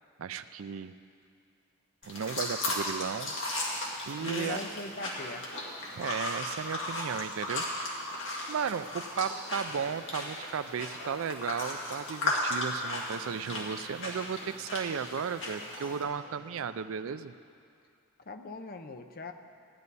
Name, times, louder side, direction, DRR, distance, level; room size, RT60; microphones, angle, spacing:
voice 1, 0.2-0.9 2.0-3.7 4.1-4.6 6.0-8.1 8.5-17.4, right 6 dB, 65° right, 13 dB, 0.4 m, -35 dB
sound 1, 2.0-16.0, left 2 dB, 55° left, 2.1 m, -36 dB
sound 2, 3.0-16.8, right 1 dB, 10° right, 3.8 m, -56 dB
voice 2, 4.2-5.5 18.3-19.3, left 3 dB, 40° left, 6 dB, 0.6 m, -40 dB
16.5 x 10.5 x 4.1 m, 2.4 s
head